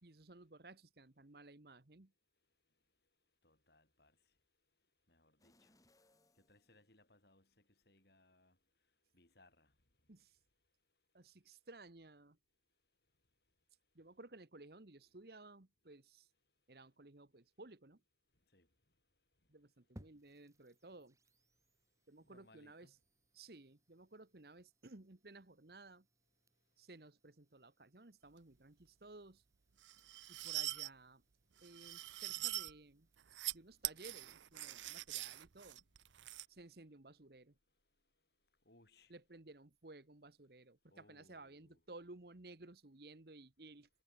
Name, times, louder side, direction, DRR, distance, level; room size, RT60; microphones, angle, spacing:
voice 1, 0.0-2.1 10.1-10.3 11.1-12.4 13.9-16.3 16.7-18.0 19.5-21.2 22.1-22.9 23.3-26.1 26.8-29.4 30.3-31.2 31.6-33.1 33.5-35.8 36.5-37.5 39.1-43.9, right 2 dB, 60° right, 1.3 m, -57 dB
voice 2, 3.4-4.1 5.1-5.7 6.5-7.5 7.9-8.5 9.1-9.7 18.5-18.7 22.2-22.9 38.7-39.1 40.9-41.8, left 2 dB, 60° left, 8.0 m, -68 dB
sound 1, 5.4-7.5 8.0-8.1, left 1 dB, 20° left, 5.2 m, -74 dB
sound 2, 20.0-34.0, equal, 15° right, 5.7 m, -68 dB
sound 3, 29.8-30.9 31.6-32.7 33.2-33.5 33.8-36.5, right 16 dB, 90° right, 0.6 m, -43 dB
head